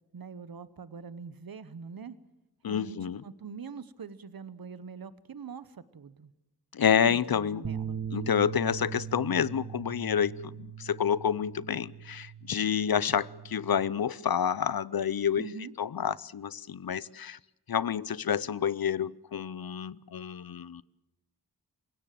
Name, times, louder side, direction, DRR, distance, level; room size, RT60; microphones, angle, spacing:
voice 1, 0.1-2.2 2.6-6.3 7.1-8.0 15.4-15.7, right 5 dB, 65° right, 1.0 m, -44 dB
voice 2, 2.6-3.2 6.7-7.7 8.1-15.5 15.8-17.4 17.7-20.8, left 8 dB, 70° left, 0.7 m, -29 dB
sound 1, 7.6-13.9, right 8 dB, 50° right, 1.4 m, -40 dB
28.0 x 17.0 x 7.6 m
cardioid pair, 45°, 38 cm